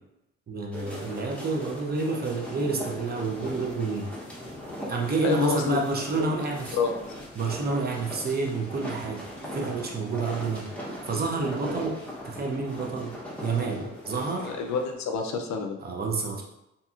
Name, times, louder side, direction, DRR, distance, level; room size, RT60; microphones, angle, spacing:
voice 1, 0.5-4.1 4.9-6.6 7.4-9.2 9.5-10.7 11.1-12.0 12.2-13.1 13.4-14.5 15.8-16.4, right 4 dB, 30° right, 0 dB, 0.6 m, -29 dB
sound 1, 0.7-14.9, equal, 5° left, 0.8 m, -39 dB
voice 2, 5.2-5.8 6.7-6.9 14.4-15.8, left 5 dB, 65° left, 4 dB, 0.5 m, -27 dB
2.8 x 2.6 x 2.4 m, 0.89 s
cardioid pair, 90°, 30 cm